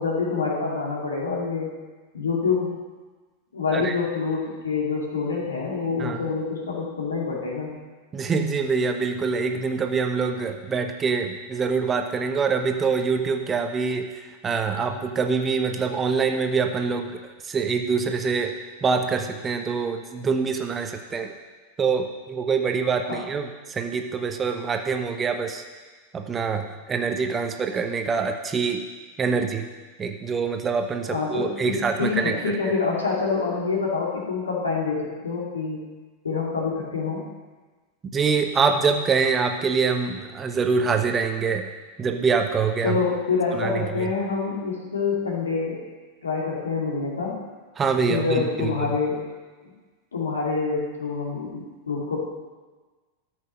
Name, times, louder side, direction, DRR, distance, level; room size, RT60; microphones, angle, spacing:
voice 1, 0.0-1.7 2.1-2.7 3.5-7.7 23.1-23.2 31.1-35.8 36.2-37.2 42.8-45.9 46.2-47.4 48.1-49.2 49.6-49.7 50.1-52.2, left 4 dB, 70° left, -2 dB, 2.5 m, -26 dB
voice 2, 8.1-18.5 18.8-21.3 21.8-25.6 26.1-28.8 29.2-29.7 30.0-32.6 38.1-41.7 42.0-43.0 43.5-44.1 47.8-48.9, right 5 dB, 20° right, 5 dB, 0.8 m, -25 dB
13.5 x 6.1 x 5.4 m, 1.3 s
figure-of-eight pair, 90°, 0 cm